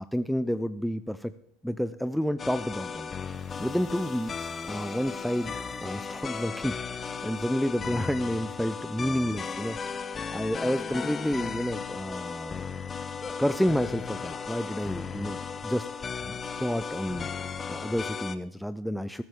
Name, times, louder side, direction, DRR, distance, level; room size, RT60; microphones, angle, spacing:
voice 1, 0.0-1.3 1.6-3.1 3.6-9.8 10.3-12.7 13.4-15.9 16.2-17.3 17.7-19.2, equal, ahead, 12 dB, 0.4 m, -30 dB
sound 1, 2.4-18.4, left 6 dB, 30° left, 0.9 m, -36 dB
sound 2, 3.0-8.1, left 9 dB, 55° left, 3.7 m, -60 dB
20.0 x 8.7 x 3.6 m, 0.73 s
hypercardioid pair, 90°, 0 cm